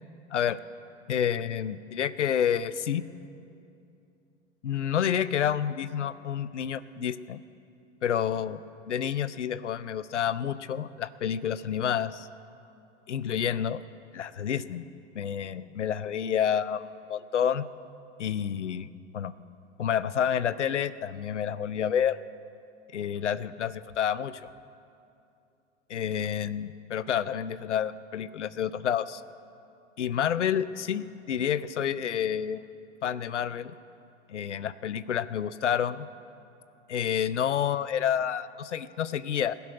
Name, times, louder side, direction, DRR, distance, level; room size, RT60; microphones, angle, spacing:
voice 1, 1.1-3.1 4.6-7.4 8.0-12.3 13.1-13.8 14.1-14.9 15.1-17.6 18.2-18.9 19.1-19.3 19.8-22.2 22.9-24.5 25.9-29.2 30.0-32.7 33.0-33.7 34.3-36.1 36.9-39.6, left 9 dB, 75° left, 16 dB, 0.6 m, -29 dB
16.5 x 7.0 x 9.2 m, 2.6 s
figure-of-eight pair, 90°, 36 cm